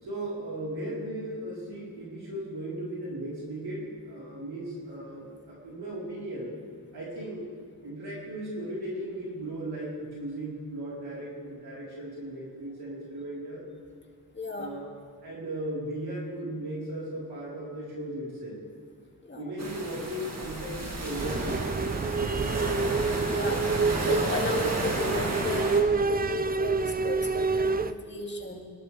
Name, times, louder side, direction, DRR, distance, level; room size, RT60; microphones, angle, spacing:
voice 1, 0.0-6.5 6.9-7.5 7.8-13.6 14.5-14.9 15.2-18.6 19.3-22.7, right 1 dB, 80° right, -6 dB, 4.2 m, -37 dB
voice 2, 14.3-14.7 19.2-19.4 23.2-23.7 24.0-28.6, left 3 dB, 30° left, 0 dB, 2.5 m, -34 dB
sound 1, 19.6-25.8, right 1 dB, 45° right, 2.3 m, -33 dB
sound 2, 21.2-27.9, right 4 dB, 25° right, 0.5 m, -27 dB
23.0 x 11.5 x 3.4 m, 2.1 s
cardioid pair, 60°, 37 cm